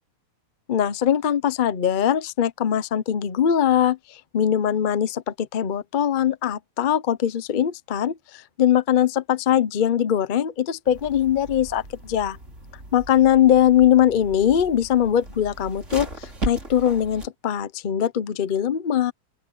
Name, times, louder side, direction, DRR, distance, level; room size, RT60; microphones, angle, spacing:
voice 1, 0.7-12.4 12.9-19.1, left 10 dB, 45° left, 0.7 m, -21 dB
sound 1, 10.8-17.3, right 2 dB, 45° right, 4.7 m, -37 dB
open air
omnidirectional pair, 1.7 m